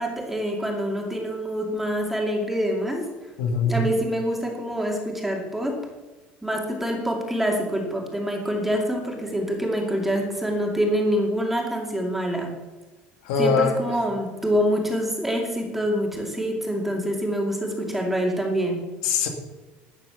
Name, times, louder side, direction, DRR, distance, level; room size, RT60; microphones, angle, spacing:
voice 1, 0.0-3.1 3.6-5.8 6.4-12.5 13.4-18.9, equal, 5° right, 1 dB, 2.4 m, -26 dB
voice 2, 3.4-3.8 13.2-14.0 19.0-19.3, left 4 dB, 90° left, 4 dB, 2.5 m, -22 dB
12.5 x 9.0 x 7.1 m, 1.2 s
cardioid pair, 155°, 4 cm